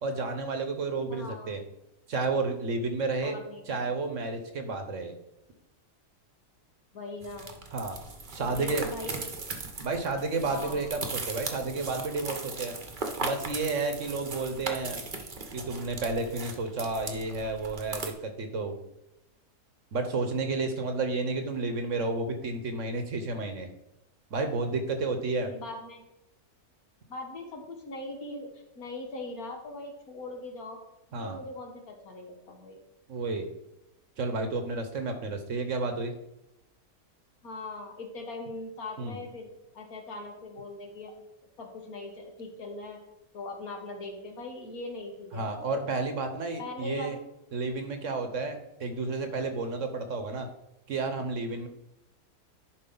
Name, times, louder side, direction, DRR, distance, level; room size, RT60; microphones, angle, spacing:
voice 1, 0.0-1.6 2.1-3.3 3.7-5.1 7.7-8.0 8.3-8.9 9.8-12.7 13.2-15.0 15.5-18.8 19.9-23.7 24.3-25.5 31.1-31.4 33.1-33.4 34.2-36.1 39.0-39.2 45.3-47.2 47.5-50.5 50.9-51.7, right 3 dB, 55° right, 6 dB, 1.2 m, -31 dB
voice 2, 1.1-1.6 3.2-3.8 6.9-7.5 8.4-9.4 10.5-10.9 25.4-26.0 27.1-30.8 31.1-32.8 37.4-39.5 39.7-41.1 41.6-43.0 43.3-45.7 46.6-47.2, left 2 dB, 70° left, 2 dB, 1.9 m, -40 dB
sound 1, 7.2-18.1, right 3 dB, 35° right, 1.0 m, -38 dB
11.0 x 4.8 x 3.9 m, 0.88 s
omnidirectional pair, 1.6 m